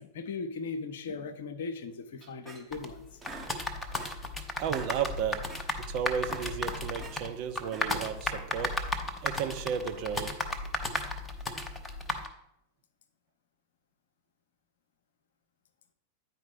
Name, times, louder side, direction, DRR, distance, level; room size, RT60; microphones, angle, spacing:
voice 1, 0.0-3.2, left 4 dB, 60° left, 10 dB, 0.7 m, -38 dB
sound 1, 2.2-2.9 3.2-4.3 4.6-5.0 5.3-5.7 6.1-7.2 7.6-8.1, right 4 dB, 15° right, 1.2 m, -46 dB
sound 2, 2.7-12.3, left 2 dB, 10° left, 0.8 m, -35 dB
voice 2, 4.6-5.4 5.7-8.8 9.2-10.3, right 7 dB, 45° right, 7 dB, 0.7 m, -33 dB
9.4 x 4.5 x 4.9 m, 0.79 s
figure-of-eight pair, 90°, 0 cm